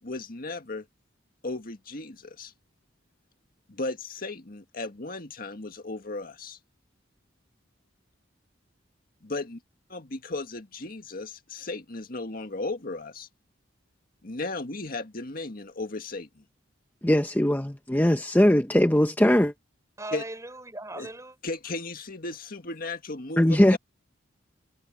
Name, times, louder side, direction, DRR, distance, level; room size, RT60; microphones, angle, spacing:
voice 1, 0.0-0.9 1.4-2.5 3.7-6.6 9.2-9.6 9.9-13.3 14.2-16.4 20.1-20.2 20.9-21.1 21.4-23.8, left 2 dB, 50° left, 1.8 m, -35 dB
voice 2, 17.0-19.5 23.4-23.8, left 1 dB, 10° left, 0.8 m, -20 dB
voice 3, 20.0-21.4, right 2 dB, 15° right, 5.1 m, -38 dB
head